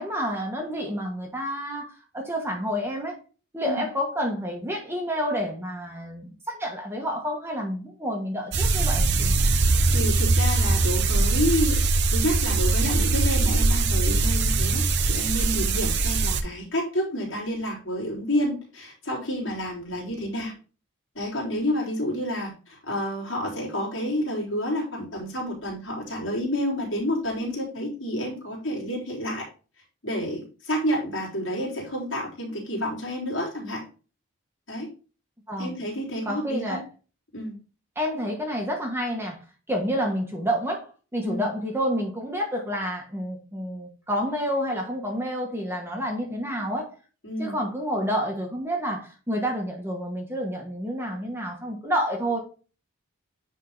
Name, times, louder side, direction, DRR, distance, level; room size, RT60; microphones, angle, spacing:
voice 1, 0.0-3.2 3.5-9.4 35.5-35.8 36.3-36.8 37.9-46.9 47.4-52.4, equal, 10° right, 0 dB, 1.3 m, -29 dB
sound 1, 8.5-16.4, right 3 dB, 50° right, 0.7 m, -22 dB
voice 2, 9.9-11.8 12.1-20.5 21.2-29.4 30.0-33.8 34.7-34.9 35.6-36.8 37.3-37.6 41.2-41.5 47.2-47.6, equal, 60° left, -3 dB, 3.6 m, -29 dB
9.7 x 3.7 x 3.9 m, 0.36 s
head